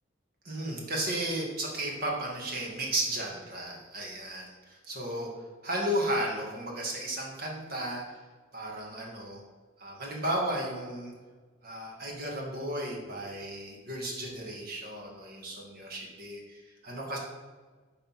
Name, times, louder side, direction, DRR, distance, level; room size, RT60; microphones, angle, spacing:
voice 1, 0.4-5.3 5.6-8.2 8.5-9.4 9.8-11.1 11.6-17.2, right 1 dB, 55° right, -2 dB, 1.9 m, -34 dB
7.3 x 4.1 x 5.8 m, 1.4 s
head